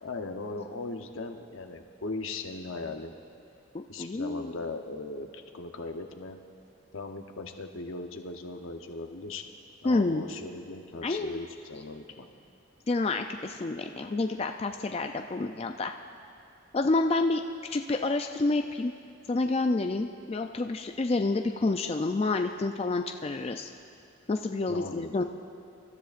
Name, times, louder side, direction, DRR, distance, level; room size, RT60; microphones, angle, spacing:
voice 1, 0.0-3.1 3.9-6.4 6.9-9.4 9.8-12.3 24.7-25.2, left 3 dB, 80° left, 5 dB, 0.9 m, -38 dB
voice 2, 3.7-4.5 9.8-10.2 11.0-11.4 12.9-15.9 16.7-17.4 17.7-18.9 19.3-23.7 24.3-25.2, left 3 dB, 30° left, 5 dB, 0.3 m, -28 dB
27.0 x 13.0 x 2.5 m, 2.5 s
head